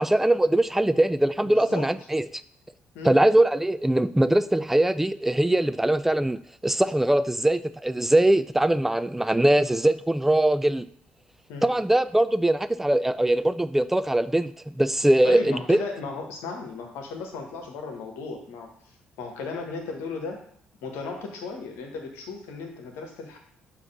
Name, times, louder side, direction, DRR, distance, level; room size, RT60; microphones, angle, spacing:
voice 1, 0.0-2.2 3.0-10.9 11.6-15.8, right 1 dB, 5° right, 15 dB, 0.3 m, -22 dB
voice 2, 1.4-1.9 2.9-3.2 11.5-11.7 15.2-18.7 19.2-20.4 20.8-23.4, left 4 dB, 60° left, 2 dB, 1.2 m, -35 dB
7.0 x 2.9 x 5.4 m, 0.64 s
figure-of-eight pair, 45°, 5 cm